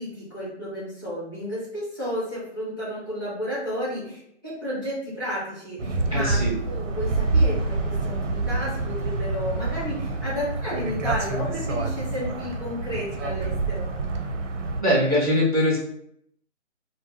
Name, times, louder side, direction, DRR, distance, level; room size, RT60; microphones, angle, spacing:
voice 1, 0.0-6.4 6.6-13.9, equal, 20° left, -10 dB, 0.9 m, -32 dB
sound 1, 5.8-14.8, right 3 dB, 90° right, 0.7 m, -27 dB
voice 2, 6.1-6.5 14.8-15.8, equal, 35° right, -5 dB, 0.4 m, -21 dB
2.2 x 2.0 x 3.5 m, 0.73 s
hypercardioid pair, 170°, 36 cm